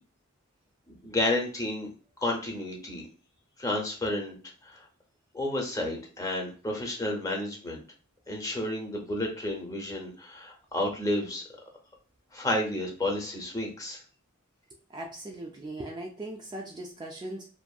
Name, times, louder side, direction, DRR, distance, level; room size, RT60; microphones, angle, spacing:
voice 1, 1.0-1.9 2.2-3.0 3.6-4.3 4.6-4.8 5.3-7.8 8.3-11.4 12.3-14.0, left 1 dB, 15° left, 0 dB, 0.6 m, -31 dB
voice 2, 14.9-17.5, right 1 dB, 20° right, 0 dB, 0.3 m, -39 dB
2.6 x 2.4 x 2.2 m, 0.35 s
head